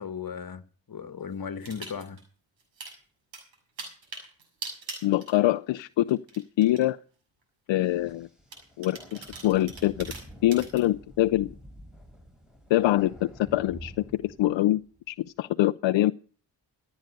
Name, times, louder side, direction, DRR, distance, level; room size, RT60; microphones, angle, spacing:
voice 1, 0.0-2.2, left 6 dB, 50° left, 1.5 m, -37 dB
sound 1, 1.6-2.2 2.6-2.9 3.3-5.8 6.1-6.8 7.4-7.5 8.5-10.8, right 4 dB, 85° right, 6.5 m, -41 dB
voice 2, 5.0-7.0 7.7-8.3 8.8-10.1 10.4-11.5 12.7-14.8 15.1-16.1, left 15 dB, 80° left, 0.6 m, -24 dB
sound 2, 7.8-15.0, equal, ahead, 6.3 m, -48 dB
15.5 x 9.1 x 6.6 m
supercardioid pair, 45°, 44 cm